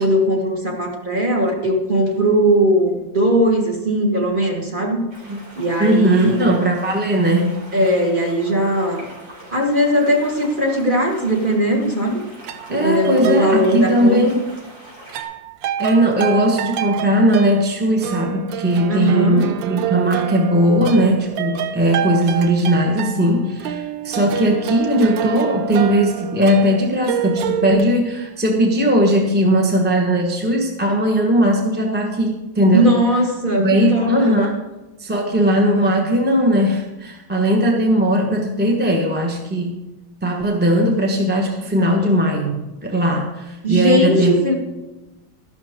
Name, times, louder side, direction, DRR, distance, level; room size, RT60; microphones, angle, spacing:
voice 1, 0.0-5.0 5.6-6.5 7.7-9.1 9.5-12.2 12.7-14.2 18.9-19.4 32.7-34.4 43.6-44.5, equal, 25° right, 0 dB, 1.8 m, -19 dB
sound 1, 5.1-15.2, right 2 dB, 70° right, 4.4 m, -42 dB
voice 2, 5.8-7.6 12.7-14.4 15.8-33.0 33.6-34.6 35.0-39.8 40.2-44.4, right 1 dB, 5° right, 0 dB, 1.0 m, -18 dB
sound 2, 12.4-14.3 15.1-27.8, right 10 dB, 90° right, 1.4 m, -27 dB
12.5 x 11.5 x 3.6 m, 1.1 s
omnidirectional pair, 2.1 m